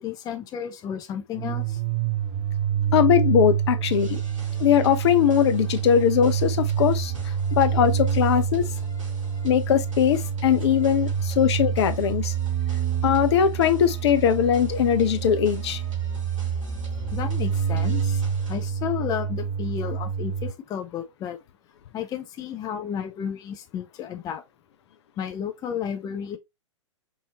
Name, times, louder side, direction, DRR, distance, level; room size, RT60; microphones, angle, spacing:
voice 1, 0.0-1.8 17.1-18.2 18.5-21.4 21.9-24.4 25.2-26.4, left 8 dB, 25° left, 0.6 m, -32 dB
sound 1, 1.3-20.5, right 8 dB, 35° right, 0.6 m, -27 dB
voice 2, 2.9-4.2 4.6-7.1 7.5-8.6 9.4-12.3 13.0-15.8, left 9 dB, 60° left, 0.7 m, -20 dB
sound 2, 3.9-18.7, right 1 dB, 85° right, 2.7 m, -48 dB
5.5 x 2.7 x 2.9 m
figure-of-eight pair, 110°, 16 cm